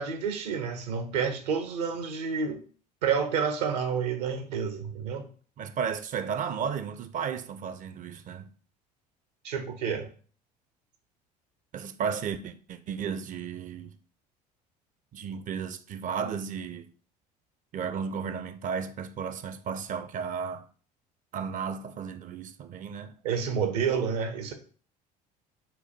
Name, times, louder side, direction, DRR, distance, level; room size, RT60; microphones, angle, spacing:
voice 1, 0.0-2.6 3.0-5.2 9.4-10.1 23.2-24.5, right 6 dB, 75° right, 0.8 m, -29 dB
voice 2, 5.6-8.5 11.7-14.0 15.1-16.9 17.7-20.7 21.3-23.1, right 7 dB, 40° right, 0.5 m, -34 dB
4.3 x 2.2 x 4.3 m
hypercardioid pair, 65°, 21 cm